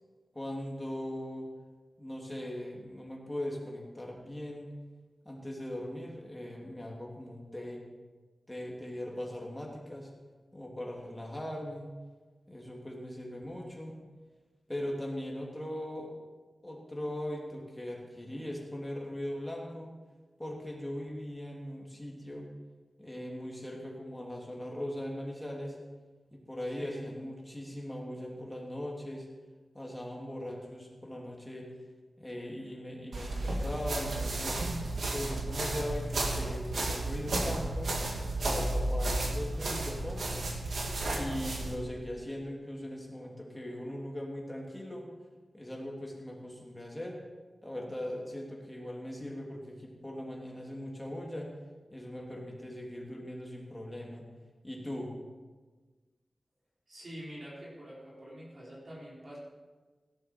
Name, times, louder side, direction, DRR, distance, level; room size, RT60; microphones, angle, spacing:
voice 1, 0.3-1.5 2.0-4.7 5.2-7.8 8.5-10.1 10.5-11.9 12.5-13.9 14.7-16.1 16.6-19.9 20.4-22.5 23.0-25.8 26.3-29.3 29.7-31.7 32.2-34.6 35.1-37.9 38.4-40.5 41.1-45.1 45.5-47.2 47.6-51.5 51.9-54.2 54.6-55.2, left 1 dB, 10° left, -2 dB, 2.8 m, -40 dB
sound 1, 33.1-41.8, right 2 dB, 85° right, 2.2 m, -33 dB
voice 2, 56.9-59.4, equal, 50° right, -6 dB, 4.2 m, -46 dB
17.0 x 11.5 x 4.5 m, 1.3 s
wide cardioid pair, 115°, 0 cm